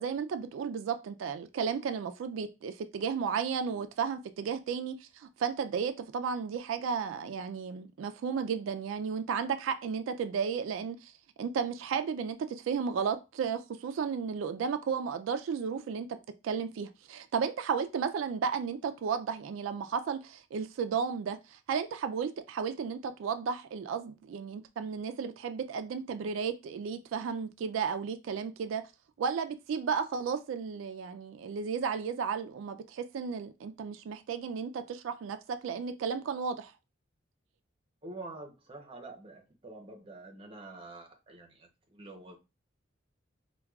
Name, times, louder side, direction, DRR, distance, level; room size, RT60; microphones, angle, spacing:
voice 1, 0.0-11.1 11.4-16.1 16.4-28.8 29.2-36.7, right 6 dB, 90° right, 0.3 m, -33 dB
voice 2, 38.0-42.4, right 2 dB, 30° right, 0.7 m, -47 dB
4.6 x 2.2 x 2.3 m
head